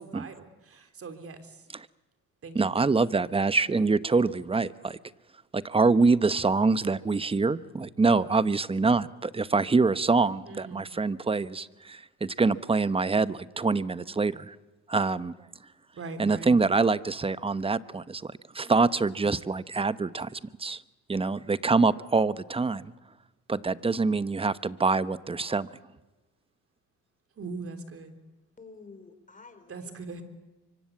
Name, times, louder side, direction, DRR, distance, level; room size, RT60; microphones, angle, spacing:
voice 1, 0.0-1.6 2.4-2.6 10.5-10.8 15.9-16.5 27.4-28.1 29.7-30.2, right 3 dB, 45° right, 8 dB, 3.4 m, -40 dB
voice 2, 2.5-5.0 5.5-14.5 14.9-15.3 16.2-20.8 21.1-22.9 23.5-25.7, right 4 dB, 15° right, 16 dB, 0.9 m, -25 dB
voice 3, 28.6-30.2, left 4 dB, 25° left, 8 dB, 4.6 m, -50 dB
24.5 x 24.0 x 8.5 m, 1.1 s
supercardioid pair, 80°, 32 cm